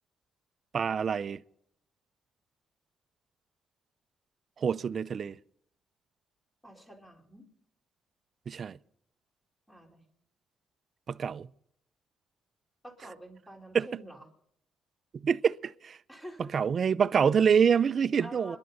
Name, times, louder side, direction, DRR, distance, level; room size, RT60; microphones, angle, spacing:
voice 1, 0.7-1.4 4.6-5.4 8.5-8.8 11.1-11.5 13.7-13.9 15.1-16.0 16.4-18.6, right 7 dB, 50° right, 0.5 m, -26 dB
voice 2, 6.6-7.5 9.7-10.0 12.8-14.3 16.1-16.5 18.2-18.6, right 1 dB, 10° left, 4.1 m, -47 dB
26.0 x 11.5 x 4.0 m
cardioid pair, 90°, 0 cm